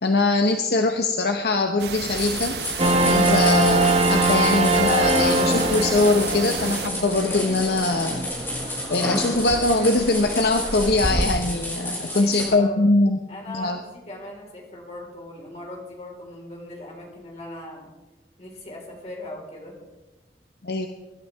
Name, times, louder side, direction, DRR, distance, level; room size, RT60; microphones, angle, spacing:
voice 1, 0.0-2.6 3.0-8.3 8.9-13.2 13.5-13.8 20.6-20.9, left 2 dB, 65° left, 5 dB, 0.9 m, -22 dB
sound 1, 1.8-6.9, right 7 dB, 65° right, 0.6 m, -32 dB
sound 2, 2.1-12.5, left 1 dB, 15° left, 5.7 m, -31 dB
sound 3, 2.8-11.3, right 2 dB, 35° right, 1.3 m, -23 dB
voice 2, 11.8-12.9 13.3-17.9 18.4-19.8, left 1 dB, 40° left, -2 dB, 4.3 m, -40 dB
24.0 x 12.0 x 3.5 m, 1.1 s
head